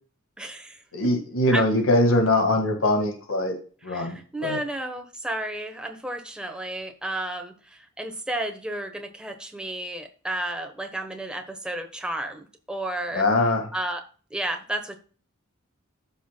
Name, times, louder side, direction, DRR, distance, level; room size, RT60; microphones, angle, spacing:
voice 1, 0.4-0.8 1.5-1.7 3.9-13.3 13.7-14.0 14.3-15.0, right 1 dB, 5° right, 4 dB, 1.0 m, -32 dB
voice 2, 0.9-3.6 3.8-4.6 13.1-13.7, left 1 dB, 75° left, 4 dB, 1.7 m, -22 dB
14.0 x 5.7 x 2.2 m, 0.39 s
head